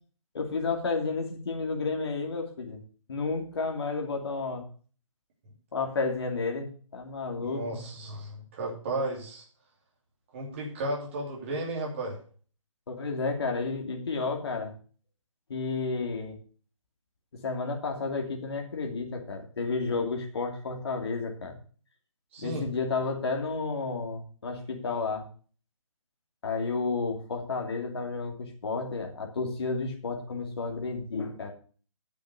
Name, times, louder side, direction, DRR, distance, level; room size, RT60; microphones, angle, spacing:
voice 1, 0.3-2.8 3.1-4.7 5.7-7.8 12.9-14.7 15.5-16.4 17.4-21.6 22.4-25.2 26.4-31.5, left 4 dB, 50° left, 2 dB, 2.8 m, -31 dB
voice 2, 7.4-9.4 10.3-12.2 22.3-22.7, right 2 dB, 20° right, -2 dB, 3.0 m, -34 dB
9.5 x 7.7 x 6.9 m, 0.41 s
hypercardioid pair, 175°, 17 cm